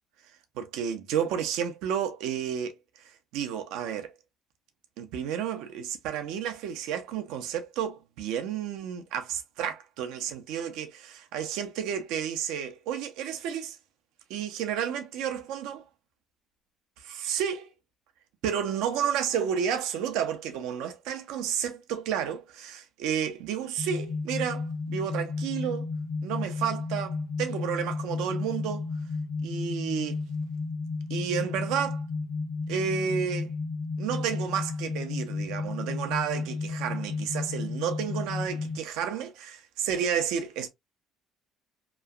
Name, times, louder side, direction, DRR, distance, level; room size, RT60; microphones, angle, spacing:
voice 1, 0.6-2.7 3.0-4.1 5.0-13.8 14.3-15.8 17.0-17.7 18.4-25.9 26.2-28.8 29.4-30.2 31.1-32.0 32.7-33.5 34.0-40.7, right 8 dB, 85° right, 0.6 m, -31 dB
sound 1, 23.8-38.8, left 4 dB, 35° left, 0.8 m, -33 dB
3.0 x 2.4 x 2.2 m
supercardioid pair, 75°, 0 cm